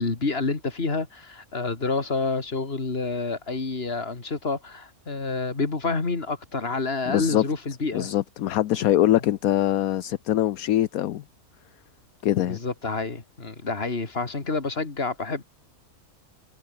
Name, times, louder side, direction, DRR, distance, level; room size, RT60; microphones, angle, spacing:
voice 1, 0.0-8.1 12.4-15.4, left 3 dB, 40° left, 2.8 m, -28 dB
voice 2, 7.1-7.4 7.9-11.2 12.2-12.6, left 13 dB, 70° left, 1.1 m, -23 dB
omnidirectional pair, 1.6 m